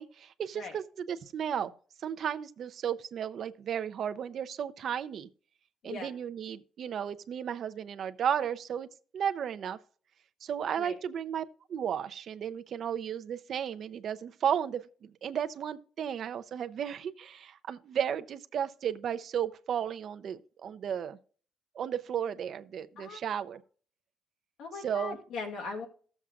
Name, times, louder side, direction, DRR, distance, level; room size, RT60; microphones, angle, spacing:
voice 1, 0.0-1.7 2.0-5.3 5.8-8.9 9.1-9.8 10.4-11.4 11.7-21.2 21.7-23.6 24.8-25.2, right 8 dB, 45° right, 0.6 m, -34 dB
voice 2, 24.6-25.9, left 4 dB, 70° left, 2.0 m, -39 dB
15.0 x 7.2 x 2.4 m
cardioid pair, 175°, 0 cm